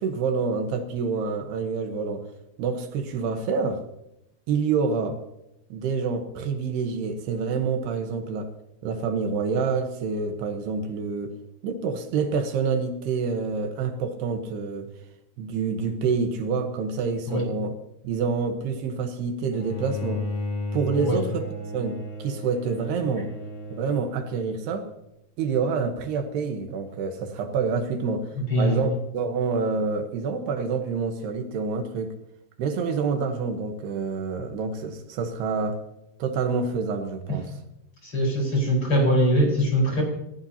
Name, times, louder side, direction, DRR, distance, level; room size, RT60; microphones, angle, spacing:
voice 1, 0.0-2.3 2.6-3.8 4.5-5.2 5.7-8.5 8.8-11.3 11.6-14.9 15.4-17.7 18.0-20.3 20.7-21.4 21.7-23.3 23.7-24.9 25.4-28.3 28.6-32.1 32.6-35.8 36.2-37.5, right 5 dB, 75° right, 6 dB, 3.3 m, -27 dB
Bowed string instrument, 19.5-24.7, left 2 dB, 75° left, 6.1 m, -34 dB
voice 2, 28.4-28.9 37.3-37.4 38.0-40.0, equal, 30° left, -1 dB, 5.4 m, -22 dB
28.0 x 15.0 x 2.9 m, 0.87 s
omnidirectional pair, 4.7 m